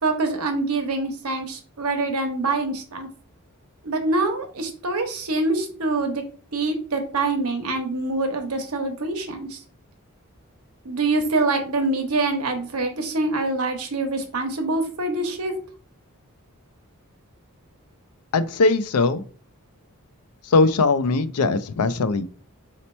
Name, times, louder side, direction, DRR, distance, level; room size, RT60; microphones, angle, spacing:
voice 1, 0.0-3.1 3.8-6.2 6.5-9.6 10.8-15.5, right 2 dB, 80° right, 5 dB, 1.0 m, -25 dB
voice 2, 18.3-19.2 20.4-22.2, left 3 dB, 85° left, 14 dB, 0.5 m, -20 dB
4.1 x 2.9 x 4.3 m, 0.41 s
head